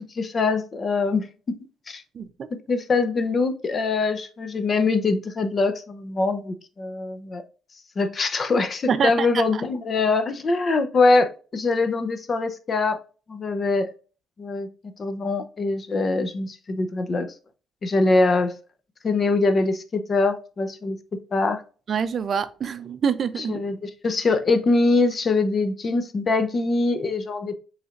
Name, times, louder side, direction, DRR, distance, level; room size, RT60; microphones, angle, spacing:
voice 1, 0.1-1.6 1.9-2.0 2.7-7.4 8.0-13.0 13.3-13.9 14.4-14.7 15.0-17.3 17.8-18.5 19.0-21.0 21.3-21.6 23.5-27.5, left 3 dB, 40° left, 0.7 m, -23 dB
voice 2, 2.1-2.5 8.9-9.6 21.9-23.7, right 6 dB, 50° right, 0.5 m, -26 dB
5.4 x 3.3 x 2.5 m
cardioid pair, 90°, 0 cm